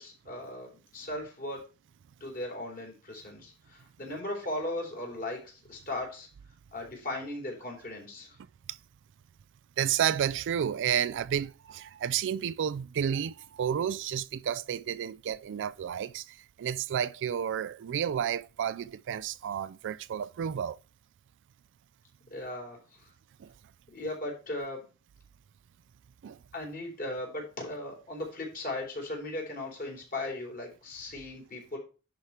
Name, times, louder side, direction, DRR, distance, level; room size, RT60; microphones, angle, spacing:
voice 1, 0.0-1.7 2.2-6.3 6.7-8.4 22.3-23.1 23.9-24.8 26.5-31.8, left 1 dB, 40° left, 3.6 m, -37 dB
voice 2, 9.8-20.8 23.4-23.5 26.2-26.4, right 9 dB, 55° right, 0.3 m, -31 dB
10.5 x 4.8 x 4.3 m
head